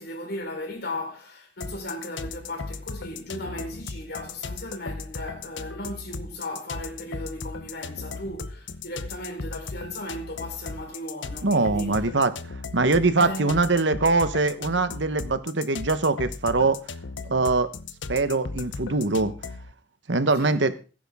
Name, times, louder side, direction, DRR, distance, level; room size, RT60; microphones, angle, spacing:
voice 1, 0.0-12.0 13.2-13.7 20.4-20.6, left 1 dB, 60° left, 4.5 m, -36 dB
sound 1, 1.6-19.7, left 4 dB, 85° left, 0.9 m, -37 dB
voice 2, 11.4-12.3 12.7-16.8 17.3-17.7 18.1-19.3 20.1-20.7, right 3 dB, 70° right, 1.2 m, -22 dB
17.0 x 10.5 x 3.7 m
head